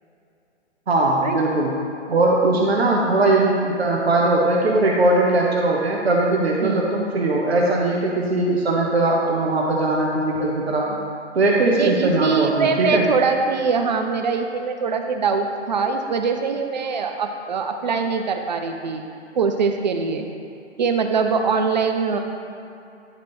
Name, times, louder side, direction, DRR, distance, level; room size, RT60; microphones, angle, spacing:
voice 1, 0.9-1.7 2.1-10.9 11.3-13.0, right 2 dB, 60° right, -2 dB, 1.0 m, -20 dB
voice 2, 11.8-19.0 19.4-20.3 20.8-22.2, right 5 dB, 40° right, 5 dB, 0.5 m, -22 dB
10.5 x 4.1 x 3.1 m, 2.7 s
figure-of-eight pair, 130°, 36 cm